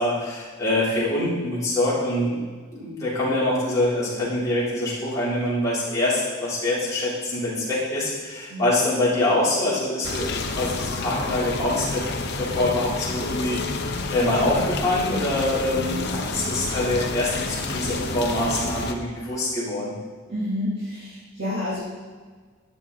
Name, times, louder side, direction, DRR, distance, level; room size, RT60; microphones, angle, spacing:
voice 1, 0.0-2.4 2.7-13.8 14.1-19.9, left 1 dB, 15° left, -8 dB, 3.7 m, -25 dB
sound 1, 10.0-18.9, left 3 dB, 50° left, 0.9 m, -29 dB
voice 2, 20.3-21.8, left 1 dB, 50° right, -12 dB, 3.3 m, -29 dB
12.0 x 8.9 x 4.1 m, 1.5 s
head